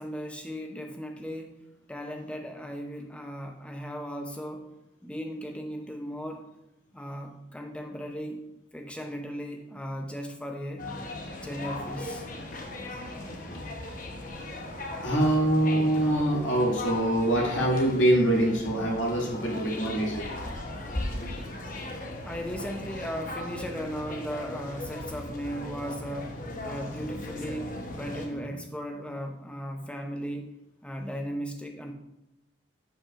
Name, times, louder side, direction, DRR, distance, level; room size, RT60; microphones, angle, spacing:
voice 1, 0.0-4.7 5.0-6.5 6.9-8.4 8.7-10.9 11.4-12.2 14.9-15.3 22.2-30.5 30.8-31.9, equal, 5° left, 3 dB, 0.6 m, -37 dB
sound 1, 10.8-28.3, left 2 dB, 40° left, 1.0 m, -38 dB
voice 2, 15.0-20.3 21.7-21.9 28.3-28.5, right 1 dB, 70° left, -3 dB, 2.3 m, -24 dB
11.0 x 6.0 x 2.5 m, 0.88 s
head